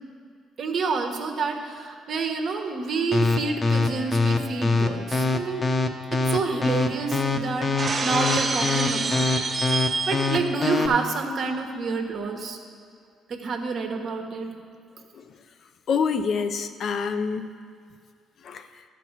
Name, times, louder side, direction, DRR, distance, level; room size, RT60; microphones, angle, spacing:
voice 1, 0.6-5.7 6.1-7.7 8.0-9.3 9.6-12.6 13.3-14.5, right 4 dB, 60° right, 3 dB, 1.3 m, -28 dB
sound 1, 3.1-10.9, left 3 dB, 30° left, 0.9 m, -23 dB
Shatter, 7.8-10.5, right 3 dB, 35° right, 0.8 m, -27 dB
voice 2, 15.9-17.5 18.4-18.8, left 5 dB, 60° left, 9 dB, 0.6 m, -27 dB
12.0 x 4.7 x 7.4 m, 2.2 s
supercardioid pair, 75°, 0 cm